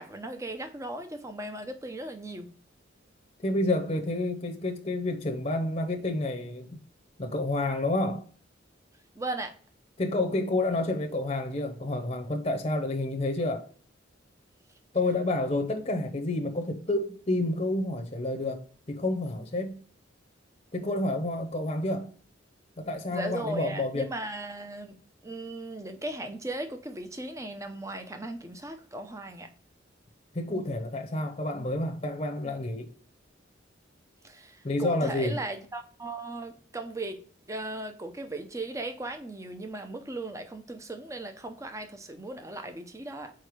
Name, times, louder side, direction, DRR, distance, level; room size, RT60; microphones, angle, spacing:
voice 1, 0.0-2.5 9.2-9.5 23.1-25.0 25.2-29.5 34.2-37.2 37.5-43.3, right 2 dB, 15° right, 0.7 m, -37 dB
voice 2, 3.4-6.8 7.2-8.2 10.0-13.7 14.9-18.6 18.9-19.8 20.7-22.1 22.8-24.1 30.3-32.9 34.6-35.4, left 2 dB, 30° left, 0.8 m, -29 dB
4.7 x 4.5 x 4.9 m
head